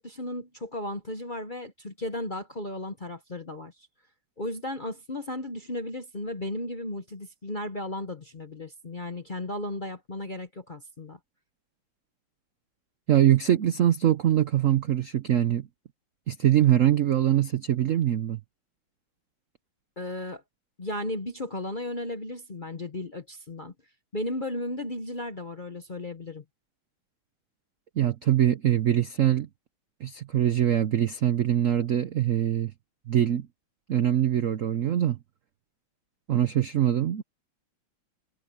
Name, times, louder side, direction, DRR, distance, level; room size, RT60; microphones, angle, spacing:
voice 1, 0.0-3.7 4.4-11.2 20.0-20.4 20.8-23.7 24.1-26.4, left 1 dB, 35° left, 0.8 m, -35 dB
voice 2, 13.1-15.7 16.3-18.4 28.0-29.5 30.0-32.7 33.1-33.5 33.9-35.2 36.3-37.2, right 11 dB, 85° right, 0.7 m, -23 dB
omnidirectional pair, 2.4 m